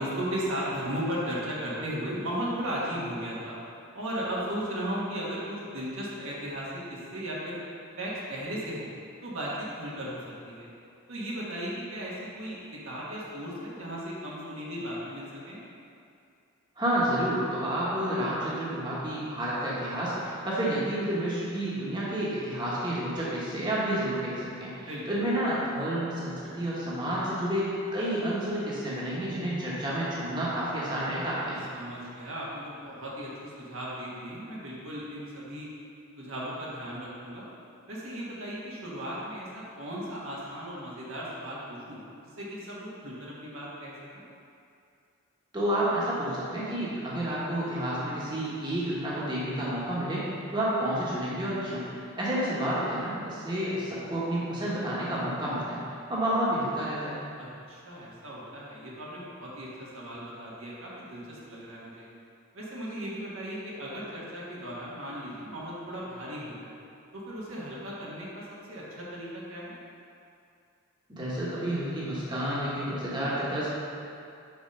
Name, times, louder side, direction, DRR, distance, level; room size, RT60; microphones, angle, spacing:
voice 1, 0.0-3.6 3.9-7.6 8.0-8.9 9.2-10.2 10.4-10.7 11.1-15.6 24.8-25.0 31.7-35.7 36.2-37.5 37.9-44.2 57.4-62.1 62.5-66.7 67.1-69.7, equal, 80° right, -6 dB, 1.5 m, -36 dB
voice 2, 16.8-31.6 45.5-55.8 56.1-57.2 71.1-73.7, right 1 dB, 20° right, -8 dB, 1.2 m, -30 dB
5.2 x 4.9 x 5.3 m, 2.4 s
head